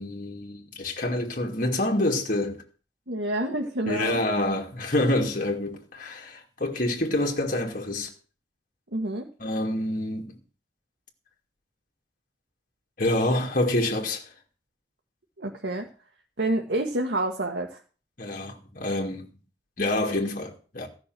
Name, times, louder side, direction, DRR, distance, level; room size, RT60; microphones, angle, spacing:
voice 1, 0.0-2.6 3.9-8.1 9.4-10.4 13.0-14.2 18.2-19.3 19.8-20.9, left 1 dB, 50° left, 2.3 m, -27 dB
voice 2, 3.1-4.2 8.9-9.3 15.4-15.9 16.4-17.8, right 1 dB, 80° right, 1.8 m, -28 dB
14.0 x 6.3 x 7.7 m
head